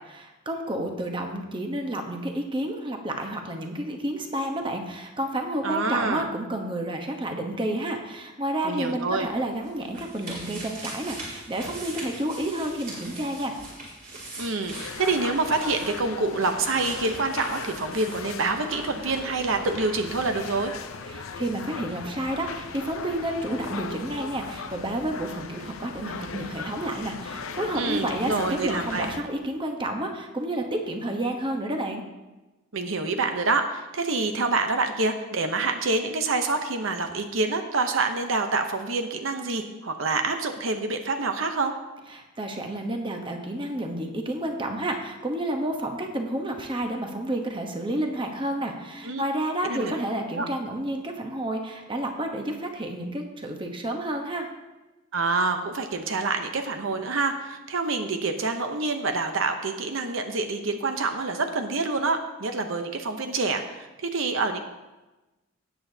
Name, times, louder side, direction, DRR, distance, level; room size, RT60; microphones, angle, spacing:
voice 1, 0.2-13.5 21.1-32.0 42.1-54.5, right 1 dB, 25° right, 3 dB, 1.0 m, -30 dB
voice 2, 5.6-6.2 8.6-9.3 14.4-20.7 27.7-29.1 32.7-41.7 49.0-49.2 49.6-49.9 50.4-50.5 55.1-64.6, right 3 dB, 65° right, 6 dB, 0.8 m, -27 dB
sound 1, 9.2-18.9 19.1-19.2, right 2 dB, 45° right, 3.9 m, -41 dB
sound 2, 14.7-29.2, left 5 dB, 75° left, 0.6 m, -38 dB
17.5 x 7.9 x 2.8 m, 1.1 s
head